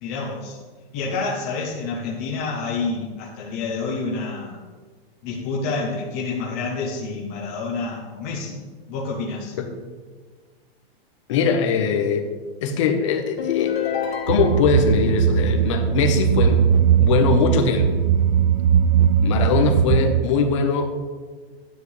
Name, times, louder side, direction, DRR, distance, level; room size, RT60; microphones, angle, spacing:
voice 1, 0.0-0.6 0.9-4.6 5.2-8.6 8.9-9.6, left 4 dB, 15° left, -4 dB, 0.5 m, -28 dB
voice 2, 11.3-12.3 12.6-13.7 14.3-16.6 17.0-17.9 19.2-20.9, left 5 dB, 30° left, 4 dB, 1.0 m, -21 dB
sound 1, 13.4-14.9, left 9 dB, 75° left, 2.0 m, -26 dB
sound 2, 14.3-20.2, right 8 dB, 50° right, 0.4 m, -19 dB
13.0 x 9.5 x 3.2 m, 1.5 s
supercardioid pair, 180°, 31 cm